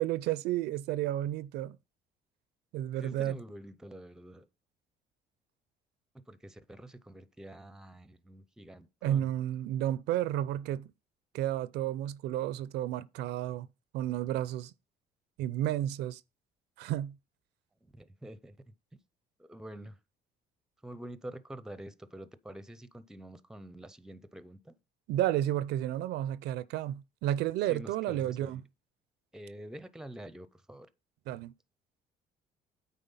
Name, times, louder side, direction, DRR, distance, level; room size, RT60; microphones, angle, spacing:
voice 1, 0.0-1.8 2.7-3.4 9.0-10.9 11.3-13.7 13.9-14.7 15.4-16.2 16.8-17.2 25.1-28.6 31.3-31.5, right 12 dB, 80° right, 0.5 m, -32 dB
voice 2, 2.9-4.5 6.1-9.3 17.8-18.6 19.4-20.0 20.8-24.7 27.7-28.6 29.3-30.9, right 1 dB, 5° right, 0.5 m, -47 dB
9.0 x 3.9 x 5.5 m
cardioid pair, 110°, 17 cm